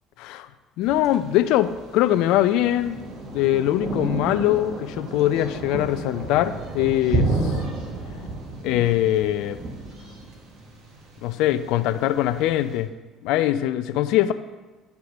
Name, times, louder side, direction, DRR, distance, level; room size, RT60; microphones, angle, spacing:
voice 1, 0.8-3.0 3.3-7.6 8.6-9.6 11.2-12.9 13.2-14.3, left 13 dB, 65° left, 12 dB, 0.3 m, -22 dB
Thunder, 0.8-12.8, right 2 dB, 55° right, 1.3 m, -32 dB
9.3 x 3.5 x 4.9 m, 1.2 s
hypercardioid pair, 65°, 0 cm